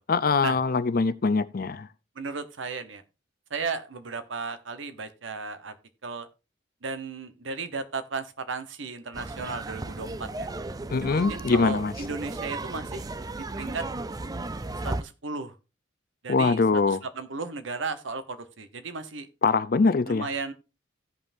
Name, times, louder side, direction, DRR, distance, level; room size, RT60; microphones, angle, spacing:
voice 1, 0.1-1.9 10.9-11.9 16.3-17.0 19.4-20.3, left 4 dB, 45° left, 0.5 m, -23 dB
voice 2, 2.2-3.0 3.5-5.7 6.0-6.3 6.8-10.5 11.0-13.1 13.4-13.8 14.8-15.5 16.2-16.6 16.9-19.3 20.1-20.5, right 4 dB, 70° right, 1.0 m, -35 dB
sound 1, 9.1-15.0, right 2 dB, 20° right, 0.4 m, -35 dB
16.5 x 5.6 x 2.6 m
head